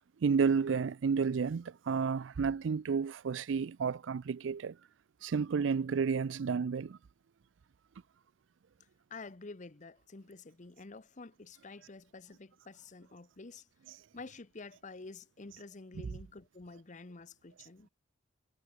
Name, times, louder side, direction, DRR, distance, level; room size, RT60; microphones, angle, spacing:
voice 1, 0.2-4.8 5.2-7.0, right 5 dB, 80° right, 0.4 m, -31 dB
voice 2, 9.1-13.6 14.1-17.9, left 3 dB, 40° left, 0.9 m, -49 dB
head